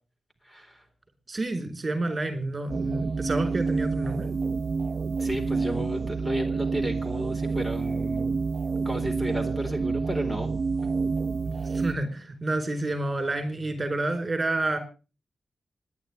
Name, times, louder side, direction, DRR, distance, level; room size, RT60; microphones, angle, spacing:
voice 1, 0.4-0.8 5.2-8.4 8.8-10.5, equal, 10° left, 6 dB, 4.0 m, -33 dB
voice 2, 1.3-4.3 11.5-14.8, right 2 dB, 25° right, 7 dB, 4.5 m, -29 dB
sound 1, 2.7-11.9, right 4 dB, 45° right, 0.8 m, -28 dB
26.5 x 10.5 x 3.4 m, 0.33 s
wide cardioid pair, 140°, 0 cm